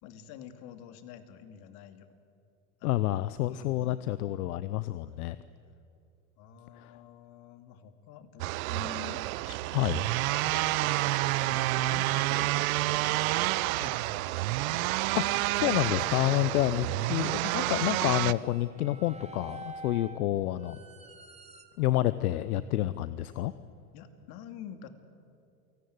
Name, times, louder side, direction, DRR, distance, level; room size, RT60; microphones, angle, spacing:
voice 1, 0.0-2.1 2.8-4.0 6.4-15.1 16.6-17.1 23.9-24.9, left 8 dB, 55° left, 8 dB, 2.6 m, -48 dB
voice 2, 2.8-5.4 6.8-6.9 9.7-10.0 15.1-20.8 21.8-23.5, left 15 dB, 75° left, 15 dB, 0.9 m, -29 dB
sound 1, 8.4-18.3, right 19 dB, 65° right, 0.8 m, -29 dB
sound 2, 13.8-21.6, right 2 dB, 15° right, 2.3 m, -48 dB
28.5 x 18.5 x 9.5 m, 2.5 s
hypercardioid pair, 100°, 44 cm